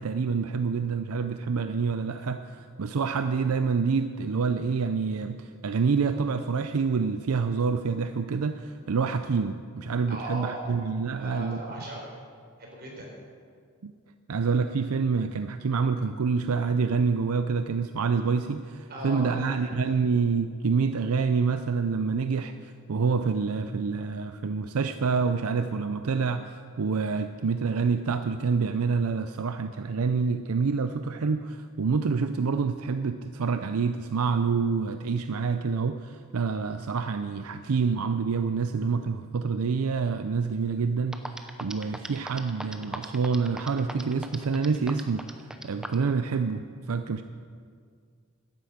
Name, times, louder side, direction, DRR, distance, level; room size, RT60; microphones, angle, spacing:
voice 1, 0.0-11.6 13.8-13.9 14.3-47.2, right 5 dB, 85° right, 9 dB, 0.5 m, -27 dB
voice 2, 10.1-10.6 11.1-12.0 12.6-13.1 18.9-19.4, right 1 dB, 50° right, -2 dB, 4.1 m, -37 dB
sound 1, 40.8-40.9 41.1-46.1, right 1 dB, 5° right, 0.7 m, -37 dB
12.0 x 10.5 x 7.9 m, 2.1 s
head